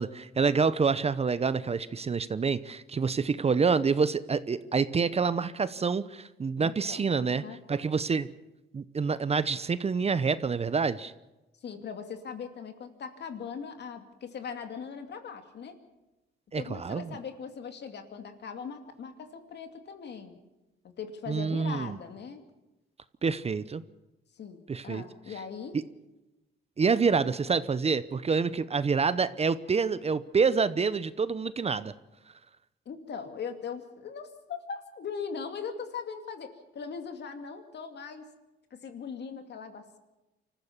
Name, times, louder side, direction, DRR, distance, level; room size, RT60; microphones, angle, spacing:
voice 1, 0.0-7.4 7.7-8.3 8.7-11.1 16.5-17.0 21.3-22.0 23.2-23.8 24.7-25.0 26.8-31.9, right 5 dB, 30° right, 15 dB, 0.8 m, -27 dB
voice 2, 6.6-7.1 7.3-7.6 11.6-15.7 16.6-20.3 21.0-22.4 24.4-25.8 32.9-38.2 38.7-40.0, left 6 dB, 60° left, 6 dB, 2.5 m, -40 dB
25.5 x 14.5 x 7.2 m, 1.0 s
cardioid pair, 90°, 20 cm